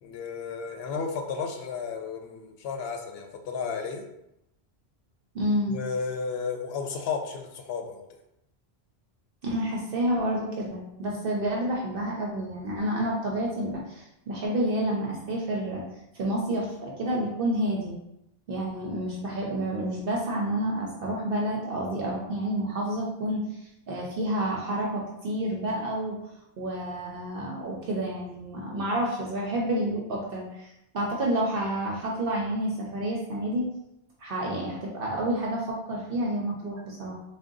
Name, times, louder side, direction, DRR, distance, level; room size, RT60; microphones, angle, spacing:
voice 1, 0.0-4.1 5.7-8.0, left 5 dB, 75° left, 4 dB, 0.8 m, -33 dB
voice 2, 5.3-5.8 9.4-15.8 16.1-17.9 18.5-23.4 23.9-26.2 26.6-33.7 34.2-37.2, right 1 dB, 65° right, -2 dB, 0.8 m, -29 dB
3.6 x 2.2 x 3.7 m, 0.84 s
omnidirectional pair, 1.1 m